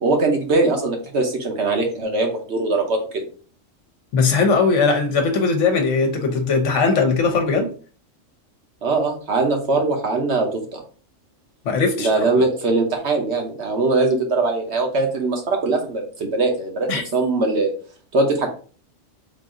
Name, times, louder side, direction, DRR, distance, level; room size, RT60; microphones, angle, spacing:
voice 1, 0.0-3.3 8.8-10.8 12.0-17.7 18.1-18.5, right 3 dB, 60° right, 1.1 m, -21 dB
voice 2, 4.1-7.7 11.6-12.1 16.9-17.0, left 4 dB, 65° left, 1.1 m, -19 dB
3.8 x 2.6 x 3.7 m
omnidirectional pair, 1.4 m